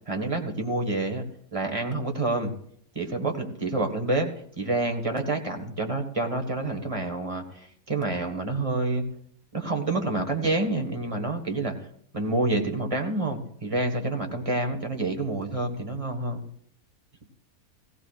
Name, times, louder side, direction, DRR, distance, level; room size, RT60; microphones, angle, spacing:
voice 1, 0.1-1.3 1.5-2.5 2.9-4.3 4.6-9.0 9.5-11.8 12.1-16.4, right 2 dB, 25° right, 5 dB, 1.6 m, -28 dB
17.5 x 17.0 x 2.5 m, 0.65 s
omnidirectional pair, 1.5 m